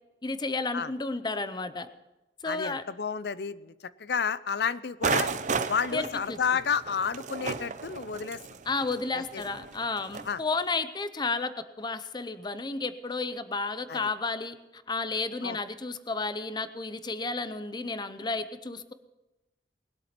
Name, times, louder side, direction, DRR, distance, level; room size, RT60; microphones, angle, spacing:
voice 1, 0.2-1.9 2.4-2.8 5.9-6.4 8.7-11.5 11.8-18.9, left 3 dB, 25° left, 12 dB, 0.7 m, -32 dB
voice 2, 2.4-3.7 4.0-5.3 5.7-8.4 9.1-9.4 10.2-10.4 13.9-14.1 15.4-15.6, left 6 dB, 65° left, 17 dB, 0.6 m, -31 dB
sound 1, 5.0-10.3, right 5 dB, 45° right, 0.7 m, -33 dB
20.5 x 8.3 x 6.0 m, 1.0 s
head